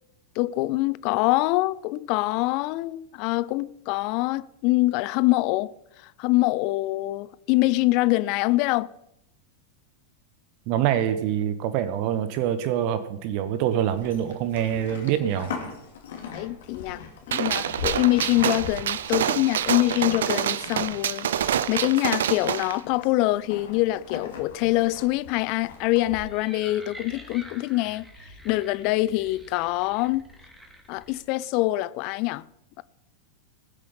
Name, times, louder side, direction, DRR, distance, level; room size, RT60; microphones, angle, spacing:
voice 1, 0.4-5.7 6.0-8.9 16.3-17.0 17.3-28.1 28.4-30.3 30.9-32.5, left 19 dB, 45° left, 0.5 m, -24 dB
voice 2, 10.7-15.5, right 10 dB, 45° right, 1.1 m, -25 dB
Livestock farm animals working animals, 13.8-26.2, left 4 dB, 60° left, 2.5 m, -41 dB
Gunshot gunfire, 17.3-22.8, right 10 dB, 60° right, 0.5 m, -27 dB
sound 1, 26.0-31.2, equal, ahead, 2.4 m, -47 dB
20.0 x 7.7 x 5.7 m
figure-of-eight pair, 90°, 0 cm